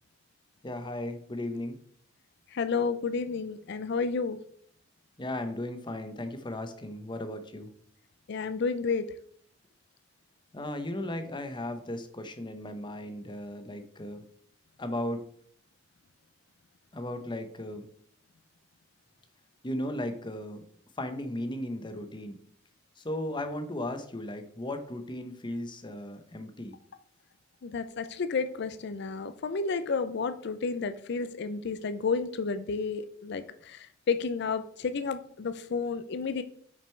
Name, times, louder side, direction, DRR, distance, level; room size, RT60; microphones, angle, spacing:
voice 1, 0.6-1.8 5.2-7.7 10.5-14.2 14.8-15.2 16.9-17.9 19.6-20.6 21.0-22.4 23.0-26.7, left 1 dB, 25° left, 8 dB, 0.8 m, -36 dB
voice 2, 2.5-4.4 8.3-9.1 27.6-36.4, left 4 dB, 60° left, 11 dB, 0.5 m, -31 dB
6.1 x 5.2 x 4.5 m, 0.63 s
head